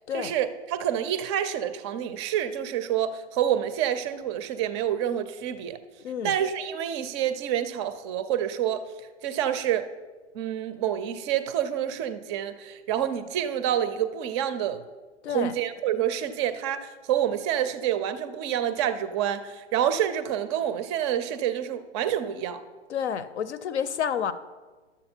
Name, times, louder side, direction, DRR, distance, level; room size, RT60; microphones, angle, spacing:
voice 1, 0.1-5.8 6.2-8.8 9.2-9.9 10.3-14.8 15.3-22.6, right 10 dB, 25° right, 12 dB, 0.5 m, -28 dB
voice 2, 6.0-6.3 15.2-15.5 22.9-24.3, left 8 dB, 65° left, 15 dB, 0.7 m, -29 dB
11.0 x 7.2 x 4.4 m, 1.3 s
hypercardioid pair, 125°, 36 cm